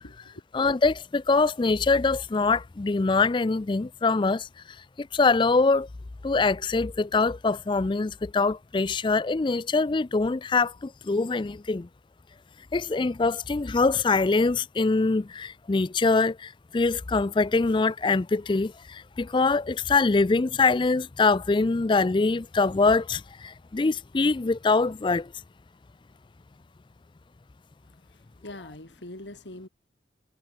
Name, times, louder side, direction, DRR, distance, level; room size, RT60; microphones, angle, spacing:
voice 1, 0.5-4.5 5.0-5.9 6.2-11.9 12.7-25.3, left 3 dB, 25° left, 0.4 m, -24 dB
voice 2, 27.9-29.7, left 1 dB, 85° left, 4.0 m, -44 dB
head